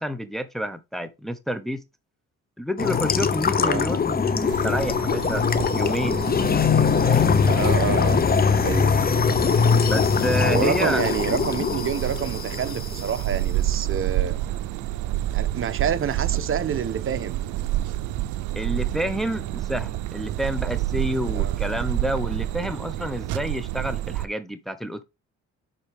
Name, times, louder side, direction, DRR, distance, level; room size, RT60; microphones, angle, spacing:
voice 1, 0.0-1.8 2.6-5.4 5.7-6.2 6.7-7.4 9.8-11.1 18.5-25.0, equal, ahead, 1.0 m, -29 dB
sound 1, 2.8-13.2, left 6 dB, 30° left, 0.7 m, -22 dB
sound 2, 4.5-24.3, right 14 dB, 80° right, 0.6 m, -29 dB
voice 2, 7.4-8.2 8.6-8.9 10.5-14.4 15.3-17.4 21.3-21.6, right 7 dB, 45° right, 1.0 m, -28 dB
10.5 x 4.0 x 3.5 m
cardioid pair, 90°, 30 cm